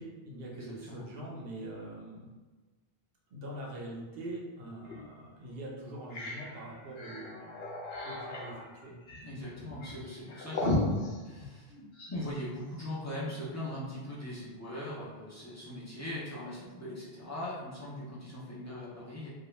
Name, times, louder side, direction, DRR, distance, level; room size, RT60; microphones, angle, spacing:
voice 1, 0.0-2.3 3.3-7.4 8.0-8.9, right 1 dB, 70° right, -2 dB, 0.8 m, -43 dB
voice 2, 0.5-1.0 9.2-11.0 11.2-11.7 12.1-19.3, left 1 dB, 25° left, -8 dB, 0.4 m, -40 dB
sound 1, 4.8-5.0 5.5-5.6 5.9-12.2, left 2 dB, 75° left, 0.8 m, -36 dB
2.3 x 2.1 x 3.0 m, 1.3 s
omnidirectional pair, 1.0 m